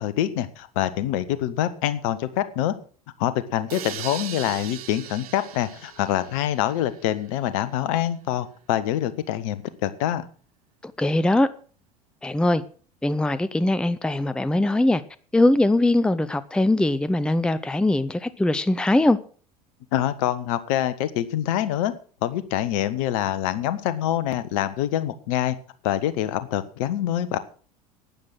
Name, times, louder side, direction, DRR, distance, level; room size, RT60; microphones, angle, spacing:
voice 1, 0.0-2.8 3.2-10.3 19.9-21.9 22.2-25.6 25.8-27.4, left 12 dB, 55° left, 14 dB, 1.3 m, -25 dB
sound 1, 3.7-7.4, right 11 dB, 65° right, 1.1 m, -39 dB
voice 2, 10.8-11.5 12.2-12.6 13.0-15.0 15.3-19.2, left 1 dB, 5° left, 16 dB, 0.7 m, -21 dB
12.0 x 9.6 x 6.3 m, 0.42 s
figure-of-eight pair, 70°, 21 cm